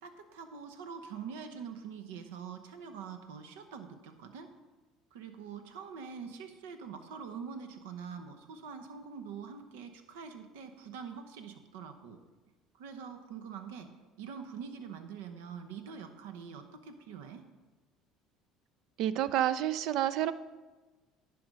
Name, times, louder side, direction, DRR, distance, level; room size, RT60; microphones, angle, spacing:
voice 1, 0.0-4.5 5.1-12.2 12.7-13.9 14.2-17.4, right 6 dB, 90° right, 7 dB, 0.9 m, -44 dB
voice 2, 19.0-20.3, right 11 dB, 65° right, 15 dB, 0.4 m, -29 dB
10.5 x 5.1 x 5.2 m, 1.2 s
supercardioid pair, 90°, 0 cm